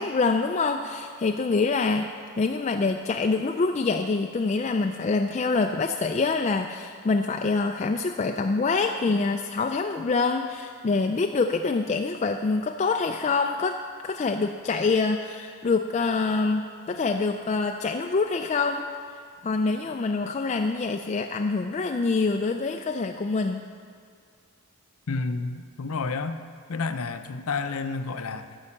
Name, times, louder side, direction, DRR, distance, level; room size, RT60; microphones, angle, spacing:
voice 1, 0.0-2.1 2.4-13.8 14.0-18.8 19.4-23.6, left 4 dB, 30° left, 4 dB, 0.3 m, -25 dB
voice 2, 25.1-26.4 26.7-28.6, left 4 dB, 80° left, 10 dB, 0.6 m, -30 dB
14.0 x 5.5 x 7.1 m, 2.3 s
head